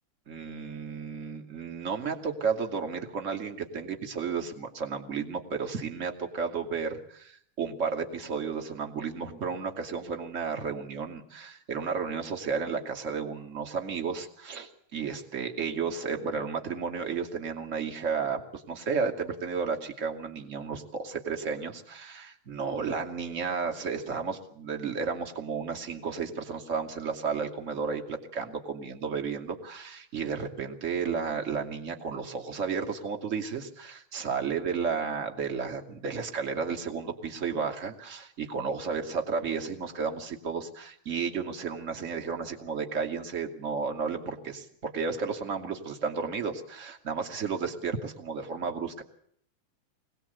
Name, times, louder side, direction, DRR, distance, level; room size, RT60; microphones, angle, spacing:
voice 1, 0.3-49.0, right 5 dB, 25° right, 4 dB, 2.4 m, -33 dB
26.0 x 19.5 x 8.2 m, 0.66 s
omnidirectional pair, 4.1 m